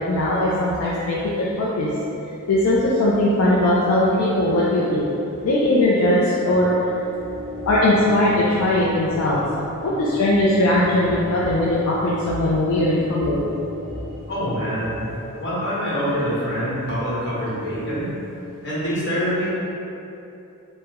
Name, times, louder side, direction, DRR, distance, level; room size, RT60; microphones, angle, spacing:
voice 1, 0.0-1.9 2.5-5.0 5.4-6.7 7.6-9.4 9.8-13.4, left 1 dB, 75° left, -6 dB, 0.4 m, -19 dB
sound 1, 6.4-14.5, left 1 dB, ahead, 1.4 m, -37 dB
voice 2, 14.3-15.1 15.4-18.1 18.6-19.5, equal, 55° left, -9 dB, 1.0 m, -25 dB
3.5 x 2.0 x 2.8 m, 2.8 s
head